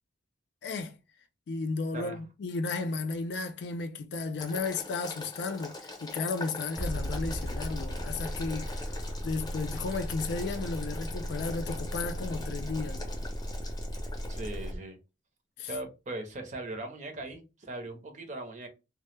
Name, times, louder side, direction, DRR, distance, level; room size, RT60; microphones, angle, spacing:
voice 1, 0.6-0.9 1.5-8.7 9.2-13.3 15.6-15.7, left 4 dB, 70° left, 0.4 m, -34 dB
Boiling, 4.4-14.7, left 2 dB, 25° left, 0.7 m, -44 dB
sound 1, 6.8-14.8, equal, 5° right, 0.4 m, -36 dB
voice 2, 14.3-15.0 15.6-18.7, right 2 dB, 45° right, 0.6 m, -39 dB
2.1 x 2.0 x 3.0 m
head